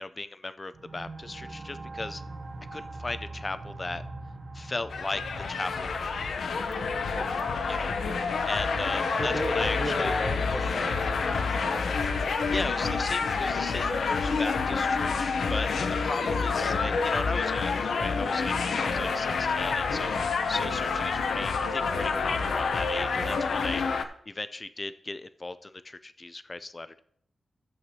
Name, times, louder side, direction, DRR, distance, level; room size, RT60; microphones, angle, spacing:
voice 1, 0.0-2.2 2.7-4.0 4.5-6.2 7.7-7.9 8.4-10.1 12.5-15.7 16.0-20.1 20.5-23.8 24.3-27.0, left 2 dB, 25° left, 12 dB, 0.4 m, -36 dB
sound 1, 0.7-12.1, right 2 dB, 45° right, 1.0 m, -44 dB
sound 2, 4.9-24.0, left 4 dB, 80° left, 0.7 m, -28 dB
voice 2, 7.1-7.6 9.2-12.5 13.1-13.8 16.4-16.5 18.9-19.3 23.1-23.3, equal, 5° right, 2 dB, 1.1 m, -37 dB
14.5 x 7.7 x 2.8 m, 0.64 s
wide cardioid pair, 155°, 0 cm